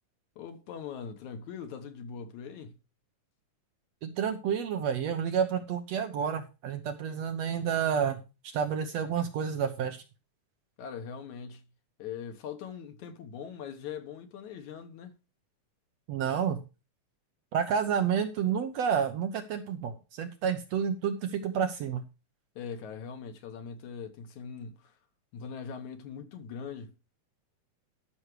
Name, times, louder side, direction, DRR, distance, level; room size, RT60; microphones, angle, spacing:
voice 1, 0.4-2.8 10.8-11.6 12.0-15.1 22.6-25.0 25.3-26.9, left 7 dB, 70° left, 2.6 m, -41 dB
voice 2, 4.0-8.2 8.5-10.0 16.1-16.6 17.5-22.0, right 7 dB, 70° right, 1.8 m, -30 dB
13.0 x 6.3 x 4.8 m
omnidirectional pair, 3.7 m